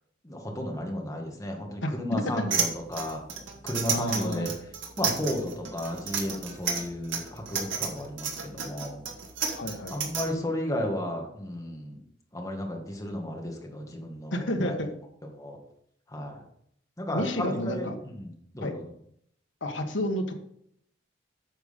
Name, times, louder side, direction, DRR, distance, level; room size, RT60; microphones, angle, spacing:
voice 1, 0.2-3.2 3.6-4.5 5.0-9.0 9.9-12.0 12.3-14.8 15.3-15.6 16.1-16.4 17.0-18.8, left 1 dB, 20° left, 1 dB, 1.7 m, -33 dB
sound 1, 2.5-10.2, right 6 dB, 75° right, 2.1 m, -31 dB
voice 2, 3.9-4.5 9.5-10.1 14.3-14.9 17.1-18.0 18.6-18.7 19.6-20.3, left 1 dB, 70° left, 4 dB, 1.4 m, -30 dB
9.2 x 6.5 x 5.2 m, 0.70 s
head